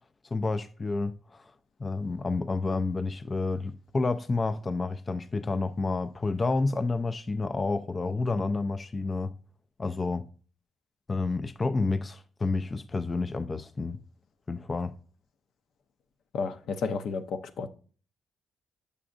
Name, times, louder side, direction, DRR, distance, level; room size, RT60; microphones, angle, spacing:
voice 1, 0.3-1.5 1.8-9.3 9.8-10.3 11.1-14.0 14.5-14.9, left 3 dB, 30° left, 0.3 m, -29 dB
voice 2, 16.3-17.7, left 5 dB, 70° left, 0.6 m, -32 dB
6.8 x 6.1 x 2.5 m
cardioid pair, 90°, 0 cm